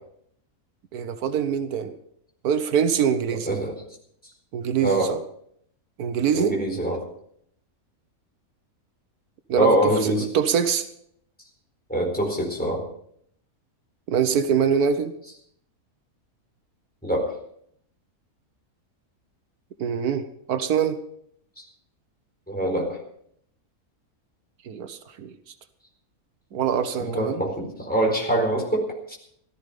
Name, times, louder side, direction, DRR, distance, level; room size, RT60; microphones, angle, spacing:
voice 1, 0.9-1.9 2.4-3.6 4.5-5.2 6.0-6.6 9.5-10.9 14.1-15.1 19.8-21.0 24.6-25.3 26.5-27.4, right 7 dB, 85° right, 10 dB, 1.5 m, -24 dB
voice 2, 3.3-3.7 4.8-5.2 6.3-7.0 9.6-10.3 11.9-12.9 17.0-17.3 21.6-21.7 22.5-23.0 27.0-29.2, right 1 dB, 5° left, 0 dB, 4.4 m, -24 dB
17.0 x 13.0 x 5.1 m, 0.69 s
omnidirectional pair, 1.5 m